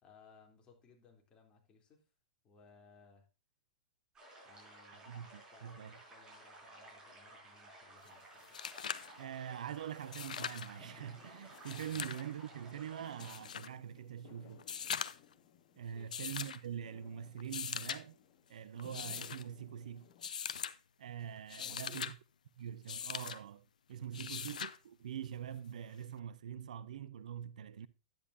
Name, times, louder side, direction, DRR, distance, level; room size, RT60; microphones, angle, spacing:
voice 1, 0.0-2.0 2.4-3.3 4.4-5.1 5.4-8.6 11.9-12.1 15.9-16.1 21.6-22.1 24.1-24.3, left 4 dB, 25° left, 3.4 m, -63 dB
sound 1, 4.2-13.4, right 1 dB, 20° right, 5.4 m, -56 dB
voice 2, 5.1-6.0 9.2-14.6 15.7-18.2 18.5-20.1 21.0-22.1 22.5-27.9, right 9 dB, 70° right, 0.6 m, -44 dB
sound 2, 8.1-8.2 8.4-9.1 10.0-10.7 11.5-12.2 13.2-13.7 14.6-15.3 16.1-16.6 17.4-18.0 18.8-19.4 20.2-20.7 21.4-22.1 22.9-23.4 24.1-24.8 26.2-26.3, left 8 dB, 75° left, 0.6 m, -41 dB
sound 3, 8.9-20.3, left 9 dB, 45° left, 1.6 m, -63 dB
10.5 x 9.5 x 2.7 m
hypercardioid pair, 110°, 4 cm